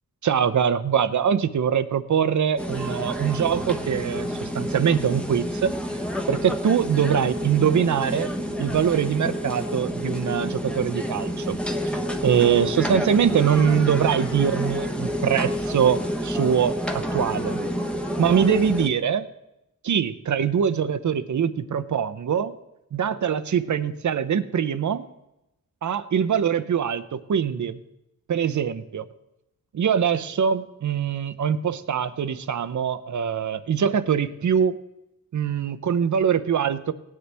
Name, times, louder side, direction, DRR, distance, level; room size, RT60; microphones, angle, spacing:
voice 1, 0.2-5.7 6.3-8.3 8.6-11.6 12.2-17.6 18.2-19.3 19.8-22.5 22.9-25.1 25.8-27.8 28.3-29.1 29.7-34.8 35.3-36.9, right 8 dB, 60° right, 12 dB, 0.7 m, -23 dB
sound 1, 2.6-18.9, equal, 5° left, 1.0 m, -29 dB
18.0 x 9.7 x 3.4 m, 0.89 s
wide cardioid pair, 135°, 33 cm